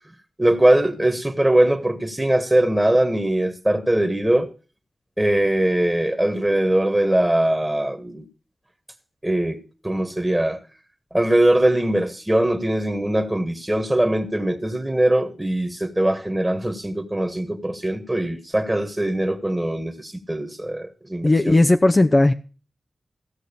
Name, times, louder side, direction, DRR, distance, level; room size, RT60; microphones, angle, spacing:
voice 1, 0.4-4.5 5.2-8.3 9.2-10.6 11.1-21.6, right 1 dB, 15° right, 7 dB, 1.6 m, -21 dB
voice 2, 21.2-22.3, left 2 dB, 35° left, 6 dB, 0.7 m, -16 dB
15.5 x 6.2 x 6.9 m, 0.38 s
cardioid pair, 45°, 0 cm